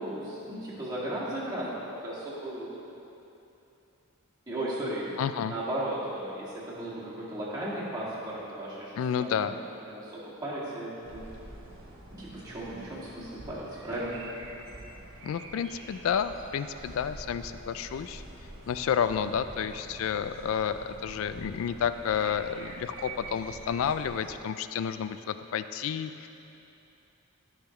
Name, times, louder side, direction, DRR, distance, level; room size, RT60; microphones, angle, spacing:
voice 1, 0.0-2.7 4.5-5.1 5.5-11.3 12.1-14.2, right 1 dB, 20° right, -9 dB, 1.9 m, -36 dB
voice 2, 5.2-5.5 9.0-9.5 15.2-18.2 18.7-26.3, left 7 dB, 70° left, 12 dB, 0.3 m, -30 dB
sound 1, 11.0-24.4, right 2 dB, 65° right, 1.1 m, -46 dB
13.5 x 5.7 x 3.0 m, 2.9 s
head